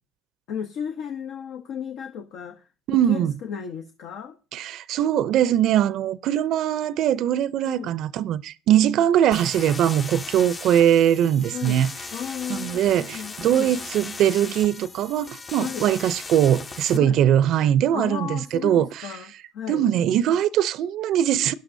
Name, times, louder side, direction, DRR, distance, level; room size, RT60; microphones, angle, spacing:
voice 1, 0.5-2.6 3.1-4.4 7.6-7.9 11.5-11.8 12.1-13.7 15.6-15.9 16.9-17.2 17.9-19.9, left 8 dB, 70° left, 0.9 m, -34 dB
voice 2, 2.9-3.3 4.5-11.9 12.5-19.1 19.7-21.5, right 10 dB, 65° right, 0.5 m, -21 dB
sound 1, 9.3-17.0, left 4 dB, 30° left, 0.7 m, -37 dB
17.5 x 11.0 x 2.7 m
cardioid pair, 105°, 0 cm